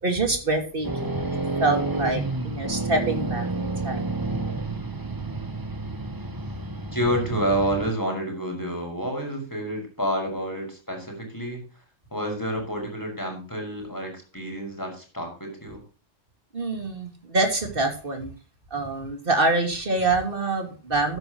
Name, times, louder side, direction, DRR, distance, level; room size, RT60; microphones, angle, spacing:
voice 1, 0.0-1.1 1.6-4.1 16.5-18.3 18.7-21.2, right 2 dB, 45° right, 4 dB, 3.1 m, -25 dB
sound 1, 0.8-7.9, right 2 dB, 20° right, 0.9 m, -30 dB
voice 2, 6.9-11.6 12.1-15.8 20.1-20.2, equal, 15° left, 1 dB, 5.7 m, -29 dB
13.0 x 11.0 x 3.0 m, 0.36 s
omnidirectional pair, 1.3 m